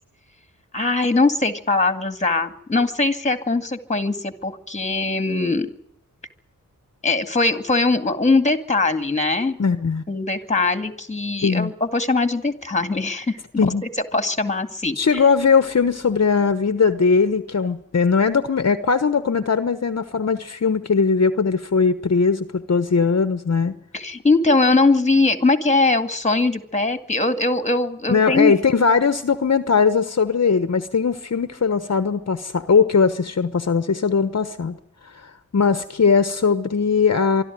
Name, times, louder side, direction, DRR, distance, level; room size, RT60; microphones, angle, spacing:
voice 1, 0.7-5.7 7.0-9.6 10.1-13.7 14.1-15.2 23.9-28.5, left 3 dB, 20° left, 10 dB, 2.1 m, -21 dB
voice 2, 9.6-10.0 11.4-11.7 13.6-13.8 15.0-23.7 28.1-34.8 35.0-37.4, left 5 dB, 55° left, 11 dB, 1.1 m, -19 dB
25.0 x 12.5 x 9.3 m, 0.73 s
wide cardioid pair, 105°, 32 cm